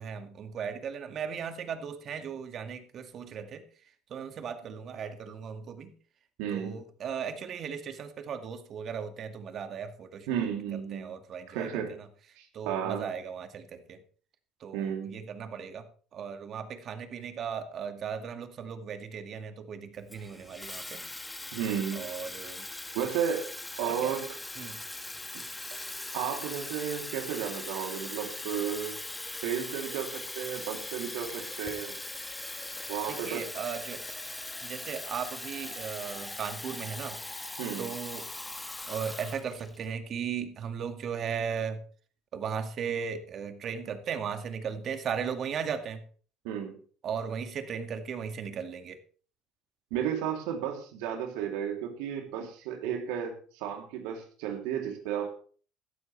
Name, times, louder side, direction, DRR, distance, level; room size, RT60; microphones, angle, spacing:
voice 1, 0.0-3.6 4.1-5.9 6.5-10.3 10.9-11.7 12.0-12.1 12.5-14.0 14.6-15.8 16.1-21.1 21.9-22.7 23.8-24.2 24.6-24.8 33.1-34.0 34.4-37.2 37.8-38.3 38.9-41.8 42.3-46.0 47.0-49.0, right 7 dB, 50° right, 7 dB, 2.1 m, -37 dB
voice 2, 6.4-6.8 10.3-11.1 11.5-12.0 12.4-13.1 14.7-15.2 21.5-22.0 22.9-23.5 23.8-24.4 26.1-29.0 29.4-32.0 32.9-33.5 37.6-37.9 46.4-46.8 49.9-55.3, right 8 dB, 75° right, 3 dB, 3.1 m, -33 dB
Water tap faucet / Fill (with liquid), 20.1-39.9, left 2 dB, 10° left, 1.7 m, -40 dB
16.0 x 12.5 x 3.4 m, 0.42 s
hypercardioid pair, 75°, 0 cm